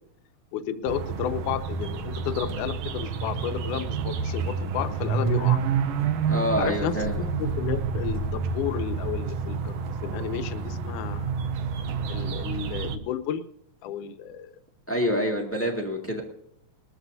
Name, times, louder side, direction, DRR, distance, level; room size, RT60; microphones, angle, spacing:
voice 1, 0.5-5.6 6.6-11.3 12.1-13.4 13.8-14.5, left 9 dB, 75° left, 9 dB, 2.2 m, -32 dB
sound 1, 0.9-13.0, right 6 dB, 75° right, 1.5 m, -29 dB
sound 2, 2.5-2.9 4.0-4.3 5.2-5.7 6.7-7.1 8.1-8.6 9.8-10.2 11.8-12.2, right 3 dB, 60° right, 1.9 m, -44 dB
voice 2, 6.3-7.2 14.9-16.2, equal, 10° left, 0 dB, 0.8 m, -26 dB
20.5 x 14.0 x 2.7 m, 0.71 s
omnidirectional pair, 3.8 m